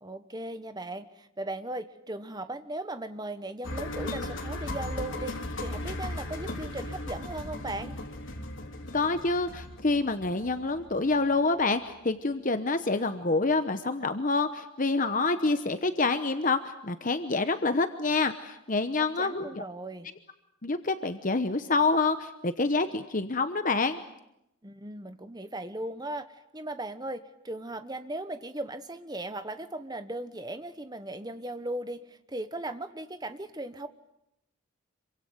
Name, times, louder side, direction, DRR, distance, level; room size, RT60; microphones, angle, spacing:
voice 1, 0.0-7.9 19.2-20.1 24.6-33.9, right 1 dB, 20° right, 10 dB, 1.2 m, -37 dB
sound 1, 3.6-11.6 11.9-12.0, left 1 dB, 60° left, 3.7 m, -37 dB
voice 2, 8.9-19.6 20.6-24.0, left 3 dB, 35° left, 9 dB, 1.0 m, -27 dB
27.0 x 24.0 x 8.0 m, 0.84 s
head